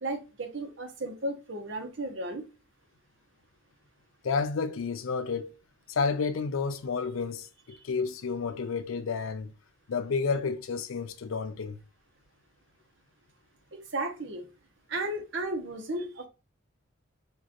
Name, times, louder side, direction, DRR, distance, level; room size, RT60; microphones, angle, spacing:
voice 1, 0.0-2.4 7.7-7.8 13.7-14.5 14.9-16.3, right 2 dB, 65° right, 0.9 m, -34 dB
voice 2, 4.2-5.5 5.9-9.5 9.9-11.8, left 5 dB, 85° left, 0.5 m, -30 dB
4.5 x 2.5 x 2.9 m
head